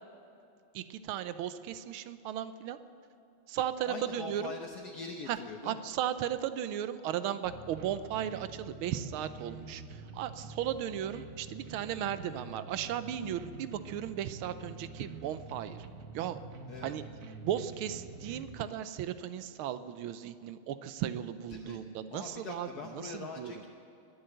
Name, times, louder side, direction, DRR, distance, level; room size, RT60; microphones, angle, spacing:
voice 1, 0.7-2.8 3.5-4.5 5.3-5.4 5.6-15.8 16.1-16.4 16.8-17.0 17.4-22.7 23.0-23.5, right 10 dB, 90° right, 12 dB, 1.6 m, -36 dB
voice 2, 3.9-5.8 16.7-16.9 21.5-21.8 22.1-23.7, left 4 dB, 55° left, 2 dB, 1.3 m, -42 dB
sound 1, 7.4-18.6, right 3 dB, 55° right, 1.0 m, -47 dB
21.0 x 8.0 x 7.9 m, 2.7 s
omnidirectional pair, 2.2 m